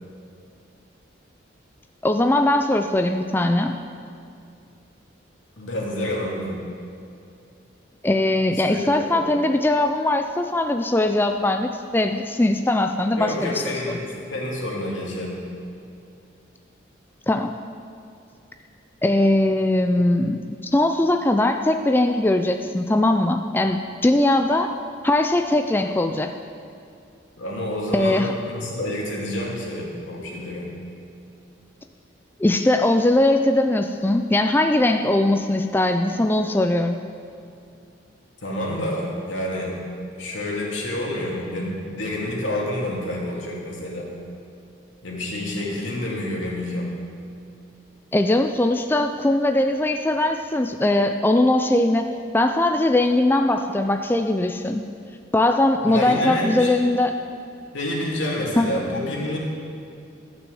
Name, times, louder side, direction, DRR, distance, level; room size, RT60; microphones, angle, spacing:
voice 1, 2.0-3.8 8.0-14.0 17.3-17.5 19.0-20.4 20.7-24.8 25.0-26.3 27.9-28.3 32.4-37.0 48.1-54.8 55.3-57.2 58.6-58.7, left 1 dB, 10° left, 6 dB, 0.3 m, -20 dB
voice 2, 5.6-6.6 8.6-9.2 13.1-15.4 27.4-30.8 38.4-39.9 40.2-44.2 45.0-46.9 55.9-56.8 57.7-59.4, left 1 dB, 85° left, -3 dB, 2.6 m, -28 dB
12.5 x 6.2 x 8.0 m, 2.5 s
head